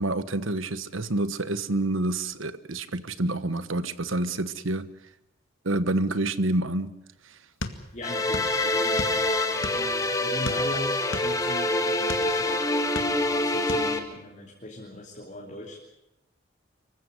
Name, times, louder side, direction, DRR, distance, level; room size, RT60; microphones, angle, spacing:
voice 1, 0.0-4.9 5.6-6.9, right 2 dB, 80° right, 13 dB, 1.3 m, -28 dB
sound 1, 7.6-8.6 8.8-10.0 10.4-12.3 12.8-13.4 13.7-13.9, left 2 dB, 80° left, 2.0 m, -35 dB
voice 2, 7.7-12.6 13.2-15.8, equal, 35° left, -2 dB, 3.5 m, -39 dB
sound 2, 8.0-14.0, left 2 dB, 15° left, 1.8 m, -26 dB
25.0 x 15.5 x 9.7 m, 0.91 s
head